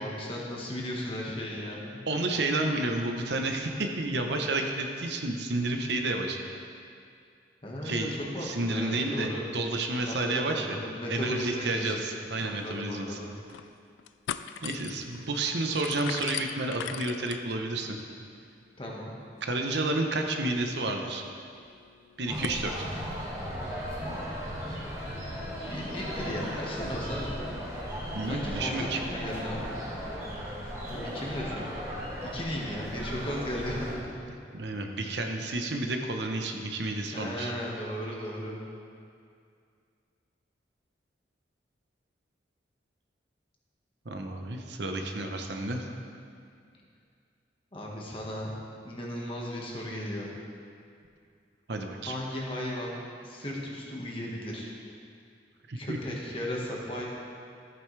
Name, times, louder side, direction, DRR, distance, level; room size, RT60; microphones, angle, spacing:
voice 1, 0.0-2.0 7.6-9.5 10.0-11.9 12.4-13.3 18.8-19.1 25.7-27.4 28.2-29.8 30.9-31.7 32.2-34.3 37.1-38.6 47.7-48.6 48.8-50.3 52.0-54.7 55.8-57.1, left 1 dB, 30° left, -3 dB, 1.5 m, -36 dB
voice 2, 2.1-6.4 7.8-8.1 8.4-10.8 11.1-13.2 14.6-18.0 19.4-21.2 22.2-22.9 28.1-29.0 34.5-37.5 44.0-45.9 51.7-52.2 55.7-56.0, right 2 dB, 70° right, 3 dB, 0.9 m, -30 dB
sound 1, 12.3-12.4 12.6-12.7 13.2-13.7 14.0-22.6, left 9 dB, 85° left, 0.3 m, -42 dB
sound 2, 22.3-33.9, equal, 15° right, 1.8 m, -36 dB
14.0 x 9.2 x 3.3 m, 2.3 s
head